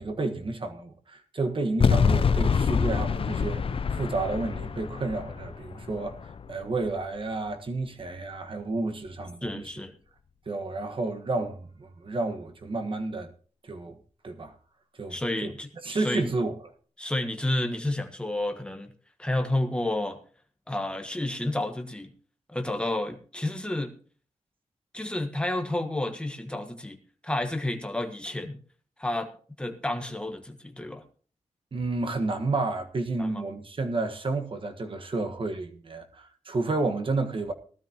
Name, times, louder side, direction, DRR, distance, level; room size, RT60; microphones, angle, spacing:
voice 1, 0.0-3.6 3.9-6.2 6.5-9.7 10.5-13.3 13.6-14.0 14.2-14.5 15.0-15.5 15.8-16.6 31.7-37.5, right 3 dB, 45° right, 1.5 m, -31 dB
sound 1, 1.8-7.0, left 6 dB, 50° left, 0.6 m, -26 dB
voice 2, 9.4-9.9 15.1-16.3 17.0-18.9 19.2-20.2 20.7-22.1 22.5-24.0 24.9-27.0 27.2-28.6 29.0-29.3 29.6-31.0 33.2-33.3, left 1 dB, 10° left, 1.4 m, -30 dB
19.0 x 12.5 x 2.9 m
wide cardioid pair, 120°, 12 cm